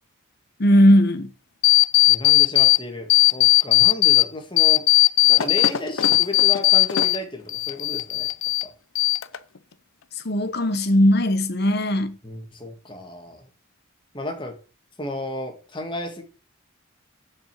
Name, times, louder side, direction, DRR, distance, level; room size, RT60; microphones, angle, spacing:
voice 1, 0.6-1.3 10.2-12.1, equal, 50° left, 1.0 m, -18 dB
sound 1, 1.6-2.8 3.1-4.2 4.6-7.2 7.5-8.6 9.0-9.6, left 19 dB, 70° left, 0.6 m, -17 dB
voice 2, 2.1-4.9 5.3-8.3 8.6-8.7 12.2-13.5 14.1-14.6 15.0-16.2, left 1 dB, 25° left, 1.8 m, -33 dB
7.5 x 5.4 x 7.5 m
head